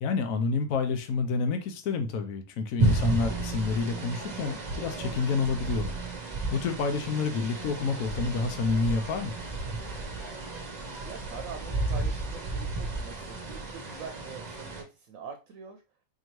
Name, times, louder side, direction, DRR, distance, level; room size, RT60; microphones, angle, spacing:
voice 1, 0.0-6.0 6.5-9.3, left 4 dB, 80° left, 1.1 m, -29 dB
sound 1, 2.8-14.8, right 2 dB, 40° right, 0.8 m, -32 dB
voice 2, 10.7-15.8, right 5 dB, 80° right, 1.0 m, -44 dB
4.4 x 2.8 x 3.0 m
omnidirectional pair, 1.4 m